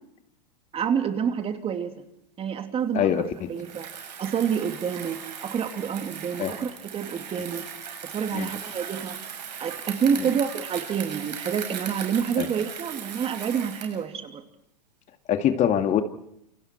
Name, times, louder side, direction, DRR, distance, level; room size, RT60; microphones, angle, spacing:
voice 1, 0.7-2.0 2.4-3.2 3.5-3.9 4.2-7.7 8.0-9.2 9.6-14.4, right 7 dB, 25° right, 2.6 m, -28 dB
voice 2, 2.9-3.5 6.4-6.5 8.3-8.5 12.4-12.5 15.3-16.0, left 9 dB, 35° left, 2.2 m, -23 dB
Bicycle, 3.5-14.0, right 7 dB, 80° right, 7.0 m, -38 dB
28.5 x 25.5 x 4.5 m
hypercardioid pair, 110°, 21 cm